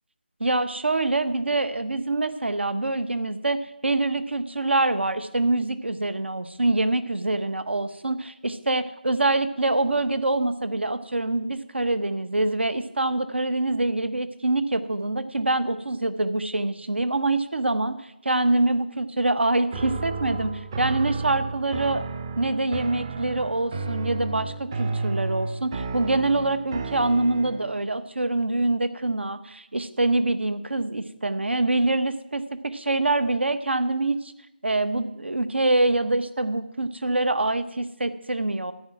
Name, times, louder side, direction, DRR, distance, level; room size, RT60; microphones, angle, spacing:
voice 1, 0.4-22.0 22.4-34.3 34.6-38.7, right 2 dB, 85° right, 12 dB, 1.2 m, -25 dB
sound 1, 19.7-27.8, right 4 dB, 20° right, 0.6 m, -32 dB
13.5 x 8.8 x 5.9 m, 0.88 s
figure-of-eight pair, 165°, 6 cm